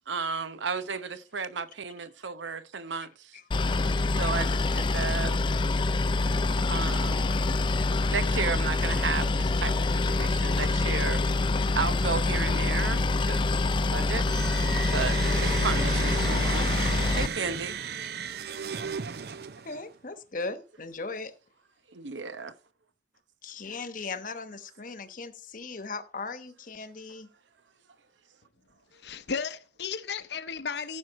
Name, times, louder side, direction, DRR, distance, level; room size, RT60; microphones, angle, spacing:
voice 1, 0.1-3.4 3.8-5.3 6.7-7.7 8.1-13.6 13.9-14.3 14.9-16.7 17.2-17.7 21.9-22.5, right 5 dB, 85° right, 0.9 m, -34 dB
Boat Water vehicle, 3.5-17.3, left 3 dB, 25° left, 0.4 m, -26 dB
sound 1, 14.2-19.8, right 6 dB, 60° right, 0.6 m, -34 dB
voice 2, 19.6-21.3 23.4-27.3, left 3 dB, 45° left, 1.0 m, -38 dB
voice 3, 28.9-31.0, left 6 dB, 65° left, 0.7 m, -34 dB
15.0 x 6.1 x 4.2 m
head